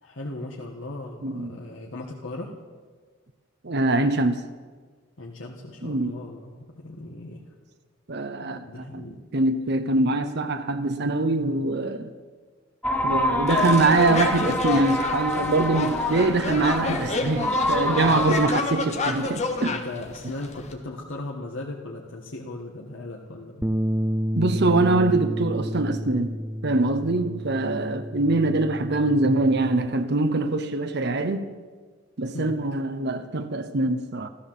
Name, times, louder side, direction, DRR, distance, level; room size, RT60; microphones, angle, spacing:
voice 1, 0.0-2.5 5.2-7.4 8.5-9.2 18.0-18.5 19.6-23.7 32.3-32.6, left 2 dB, 80° left, 1.6 m, -37 dB
voice 2, 1.2-1.6 3.6-4.4 5.8-6.2 8.1-9.1 9.3-12.1 13.0-19.7 24.3-26.4 26.6-31.5 32.2-34.3, right 2 dB, 60° right, 0.8 m, -23 dB
sound 1, 12.8-18.5, left 1 dB, 10° left, 0.9 m, -27 dB
sound 2, 13.5-20.7, left 3 dB, 35° left, 1.6 m, -29 dB
Bass guitar, 23.6-29.9, equal, 10° right, 0.5 m, -30 dB
14.0 x 13.5 x 7.5 m
head